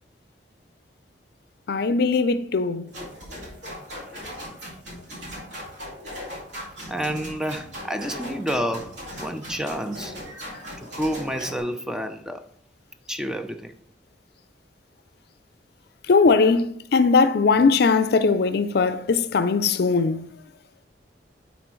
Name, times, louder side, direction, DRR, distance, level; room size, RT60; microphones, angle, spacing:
voice 1, 1.7-2.9 10.5-10.8 16.0-20.3, left 4 dB, 65° left, 0.4 m, -20 dB
sound 1, 2.9-11.6, equal, 85° right, 2.2 m, -38 dB
voice 2, 6.9-10.2 10.8-12.4 13.1-13.7, equal, 5° right, 0.4 m, -29 dB
9.3 x 4.1 x 3.1 m
head